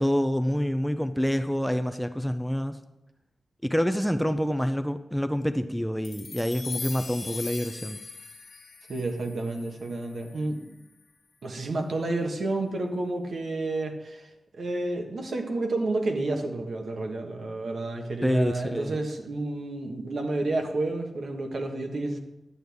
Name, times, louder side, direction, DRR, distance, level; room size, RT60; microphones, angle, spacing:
voice 1, 0.0-2.8 3.6-8.0 18.2-19.0, equal, ahead, 9 dB, 0.4 m, -27 dB
sound 1, 6.0-10.6, left 4 dB, 65° left, 1.6 m, -41 dB
voice 2, 8.9-10.7 11.4-22.2, right 2 dB, 65° right, 3 dB, 1.3 m, -30 dB
11.0 x 7.8 x 3.5 m, 0.95 s
wide cardioid pair, 90°, 0 cm